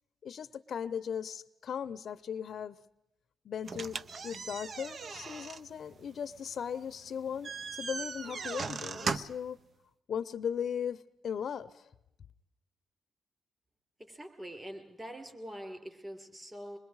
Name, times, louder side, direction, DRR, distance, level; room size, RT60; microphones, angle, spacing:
voice 1, 0.2-2.8 3.4-4.0 4.2-9.6 10.1-11.9, left 8 dB, 60° left, 13 dB, 0.6 m, -37 dB
sound 1, 3.6-9.5, right 4 dB, 45° right, 0.7 m, -39 dB
voice 2, 14.0-16.8, equal, 15° right, 5 dB, 4.5 m, -44 dB
26.0 x 21.5 x 4.8 m, 0.89 s
cardioid pair, 90°, 0 cm